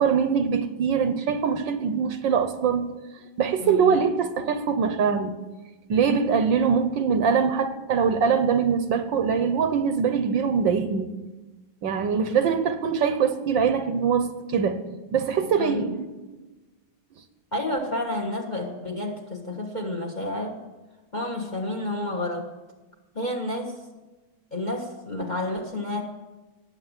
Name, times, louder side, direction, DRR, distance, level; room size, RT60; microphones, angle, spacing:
voice 1, 0.0-2.9 3.4-5.3 5.9-11.1 11.8-14.8 15.1-16.4, right 6 dB, 65° right, 9 dB, 1.5 m, -23 dB
voice 2, 3.6-4.0 15.6-16.0 17.5-20.6 21.1-22.5 23.1-23.8 24.5-26.0, left 1 dB, 25° left, 3 dB, 1.3 m, -30 dB
19.5 x 8.1 x 7.4 m, 1.2 s
omnidirectional pair, 2.3 m